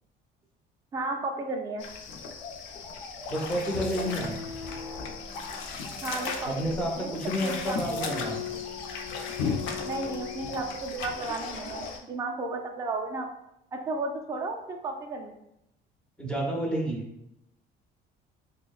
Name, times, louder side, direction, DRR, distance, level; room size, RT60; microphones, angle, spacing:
voice 1, 0.9-1.8 6.0-8.4 9.8-13.3 13.7-15.3, right 3 dB, 20° right, 2 dB, 0.4 m, -34 dB
sound 1, 1.8-12.0, left 5 dB, 85° left, 0.5 m, -36 dB
voice 2, 3.3-4.3 6.5-8.3 16.2-17.0, equal, 5° left, -2 dB, 0.9 m, -30 dB
sound 2, 3.9-10.8, left 7 dB, 60° left, 1.0 m, -41 dB
5.8 x 2.1 x 2.3 m, 0.82 s
cardioid pair, 135°, 19 cm